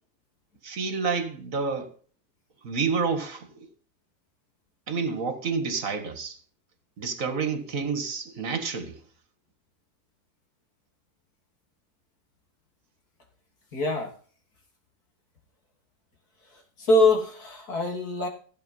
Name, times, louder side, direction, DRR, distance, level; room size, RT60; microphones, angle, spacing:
voice 1, 0.6-1.9 2.6-3.7 4.9-6.4 7.0-9.0, right 5 dB, 55° right, 2.2 m, -29 dB
voice 2, 13.7-14.1 16.5-18.3, left 2 dB, 65° left, 3.4 m, -24 dB
15.5 x 8.4 x 5.5 m
omnidirectional pair, 1.7 m